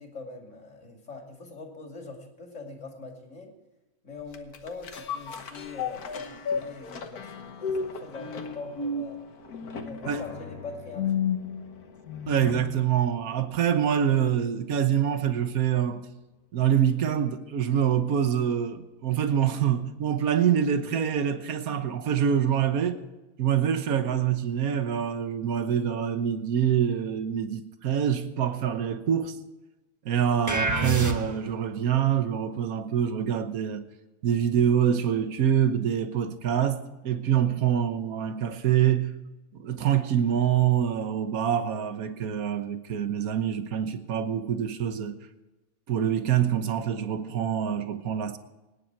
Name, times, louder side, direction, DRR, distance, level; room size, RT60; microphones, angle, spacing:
voice 1, 0.0-3.5 4.0-9.2 9.8-11.1, left 3 dB, 55° left, 2.9 m, -42 dB
sound 1, 4.3-12.9 13.3-13.4, left 6 dB, 80° left, 1.7 m, -34 dB
voice 2, 12.3-16.0 16.5-23.0 23.4-29.3 30.0-33.8 34.2-39.1 39.5-45.1 45.9-48.4, right 9 dB, 70° right, 1.5 m, -25 dB
sound 2, 30.5-31.6, right 2 dB, 15° right, 0.9 m, -27 dB
24.5 x 10.0 x 4.6 m
omnidirectional pair, 1.6 m